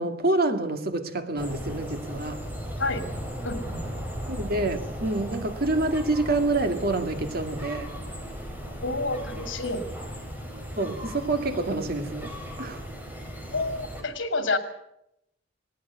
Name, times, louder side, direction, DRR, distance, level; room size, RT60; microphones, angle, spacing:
voice 1, 0.0-2.4 4.3-7.9 10.8-12.3 12.6-12.8, right 2 dB, 55° right, 2.0 m, -27 dB
sound 1, 1.4-14.0, equal, 10° right, 5.0 m, -36 dB
voice 2, 2.8-3.1 3.4-3.8 8.8-9.9 13.5-14.6, left 3 dB, 75° left, 2.7 m, -29 dB
20.0 x 17.5 x 8.2 m
head